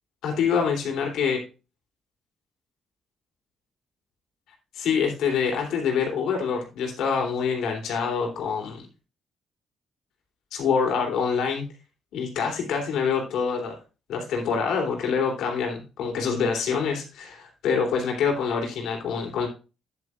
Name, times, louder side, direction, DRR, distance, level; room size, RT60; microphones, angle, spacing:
voice 1, 0.2-1.4 4.7-8.9 10.5-11.7 12.1-13.8 14.1-19.5, left 6 dB, 80° left, 1 dB, 3.2 m, -26 dB
9.8 x 9.2 x 2.5 m, 0.32 s
cardioid pair, 90°, 0 cm